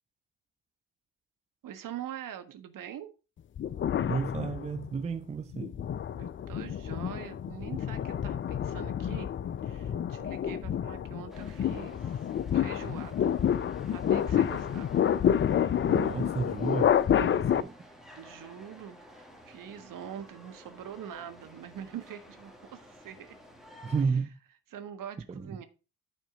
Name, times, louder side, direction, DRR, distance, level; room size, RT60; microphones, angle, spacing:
voice 1, 1.6-3.1 6.1-9.3 9.6-12.2 12.5-13.3 13.9-14.9 18.2-23.4 24.7-25.6, right 9 dB, 50° right, 1.5 m, -44 dB
sound 1, 3.6-5.0 5.5-17.6, left 9 dB, 30° left, 0.5 m, -29 dB
voice 2, 4.1-5.8 15.8-17.7 23.8-24.4 25.3-25.6, right 5 dB, 15° right, 0.5 m, -32 dB
sound 2, 11.3-24.0, equal, ahead, 2.0 m, -52 dB
10.0 x 4.4 x 5.0 m
hypercardioid pair, 55°, 41 cm